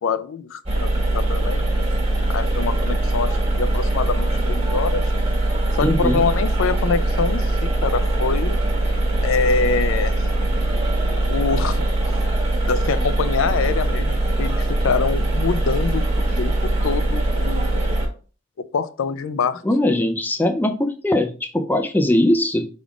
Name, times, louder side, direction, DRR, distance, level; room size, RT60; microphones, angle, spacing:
voice 1, 0.0-1.7 2.3-5.1 5.8-8.6 9.2-10.3 11.3-11.8 12.7-16.0 16.4-17.9 18.7-19.6, left 5 dB, 80° left, 13 dB, 0.4 m, -25 dB
sound 1, 0.7-18.1, right 2 dB, 30° right, 1.1 m, -21 dB
voice 2, 5.8-6.2 19.6-22.7, left 1 dB, 10° left, 6 dB, 0.3 m, -20 dB
4.9 x 3.5 x 2.3 m, 0.37 s
head